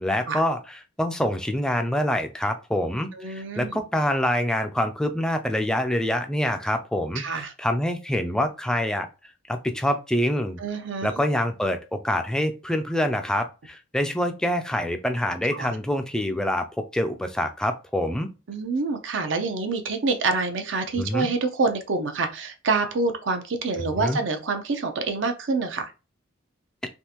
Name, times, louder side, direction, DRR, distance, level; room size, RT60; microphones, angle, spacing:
voice 1, 0.0-9.1 9.5-10.6 11.0-16.7 16.9-18.3 21.0-21.3 23.8-24.2, left 1 dB, 5° left, 6 dB, 0.3 m, -26 dB
voice 2, 3.1-3.7 7.2-7.5 10.6-11.2 15.5-15.7 18.5-25.9, right 3 dB, 60° right, 7 dB, 0.6 m, -27 dB
3.5 x 2.5 x 2.9 m, 0.31 s
head